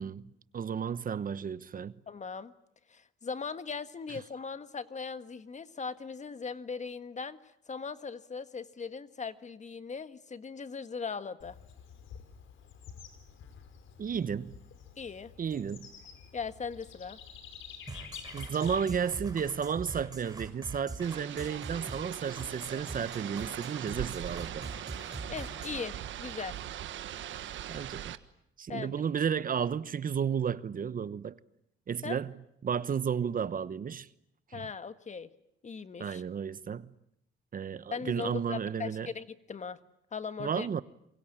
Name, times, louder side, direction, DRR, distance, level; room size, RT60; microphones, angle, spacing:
voice 1, 0.0-2.0 14.0-14.6 15.4-15.9 18.3-24.7 27.7-28.2 28.6-31.4 31.9-32.3 32.6-34.1 34.5-34.6 36.0-36.9 37.5-39.1 40.4-40.8, right 7 dB, 45° right, 1.1 m, -33 dB
voice 2, 2.1-2.5 2.9-7.4 7.7-11.6 15.0-15.3 16.3-17.2 25.3-26.5 28.7-29.1 32.0-32.2 34.5-35.3 35.6-36.2 37.9-39.8 40.1-40.7, left 5 dB, 35° left, 1.6 m, -39 dB
Bird / Insect, 11.4-20.0, left 7 dB, 75° left, 4.8 m, -50 dB
sound 1, 17.9-25.9, right 3 dB, 20° right, 6.4 m, -43 dB
sound 2, 21.0-28.2, right 11 dB, 75° right, 1.4 m, -41 dB
27.5 x 23.5 x 8.9 m
cardioid pair, 90°, 20 cm